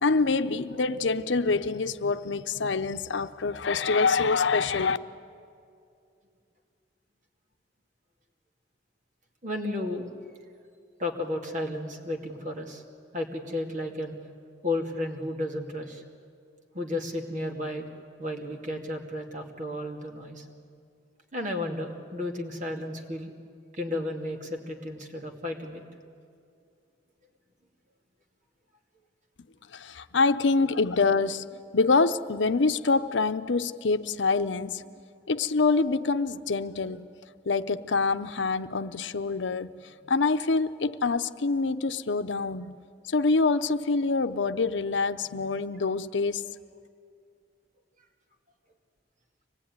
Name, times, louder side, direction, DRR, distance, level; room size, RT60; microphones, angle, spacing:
voice 1, 0.0-5.0 29.7-34.9 35.3-37.1 37.5-39.8 40.1-42.8 43.1-46.4, left 4 dB, 85° left, 0.8 m, -26 dB
voice 2, 9.4-10.1 11.0-12.8 13.1-14.2 14.6-16.0 16.7-17.9 18.2-20.5 21.3-23.3 23.7-25.8, left 1 dB, 45° right, 2.4 m, -33 dB
25.0 x 19.0 x 9.7 m
head